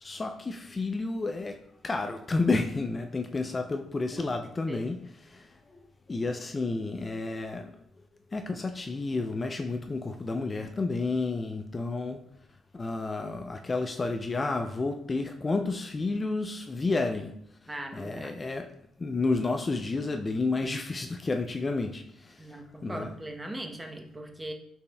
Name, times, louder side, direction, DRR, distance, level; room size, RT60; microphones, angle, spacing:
voice 1, 0.0-5.0 5.3-5.8 6.1-7.8 8.3-12.3 12.7-17.4 17.9-18.7 19.0-23.1, left 3 dB, 30° left, 0.3 m, -31 dB
voice 2, 4.1-4.9 17.7-18.3 22.4-24.5, right 1 dB, 15° right, 0.7 m, -40 dB
5.2 x 4.3 x 2.2 m
cardioid pair, 90°, 0 cm